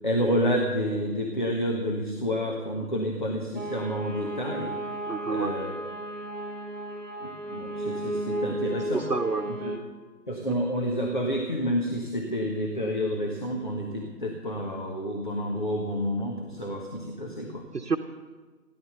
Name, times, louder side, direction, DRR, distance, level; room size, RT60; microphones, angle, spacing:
voice 1, 0.0-4.7 5.3-5.7 7.2-9.0 9.6-9.7 10.3-17.6, equal, 30° left, 1 dB, 1.3 m, -29 dB
sound 1, 3.5-9.8, right 1 dB, 30° right, 1.7 m, -33 dB
voice 2, 5.1-5.5 8.9-9.5 10.5-10.6 17.7-18.0, right 4 dB, 80° right, 4 dB, 1.2 m, -28 dB
16.5 x 11.0 x 6.8 m, 1.4 s
figure-of-eight pair, 170°, 48 cm